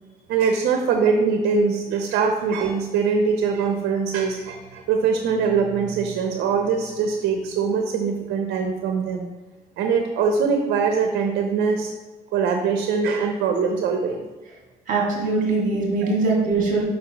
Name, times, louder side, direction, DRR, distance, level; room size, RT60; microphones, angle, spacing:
voice 1, 0.3-9.3 9.8-11.9 12.3-14.3 16.0-16.1, right 5 dB, 75° right, 4 dB, 0.7 m, -22 dB
voice 2, 14.9-16.8, right 3 dB, 50° right, -3 dB, 1.8 m, -22 dB
6.6 x 5.3 x 2.9 m, 1.2 s
cardioid pair, 110°, 17 cm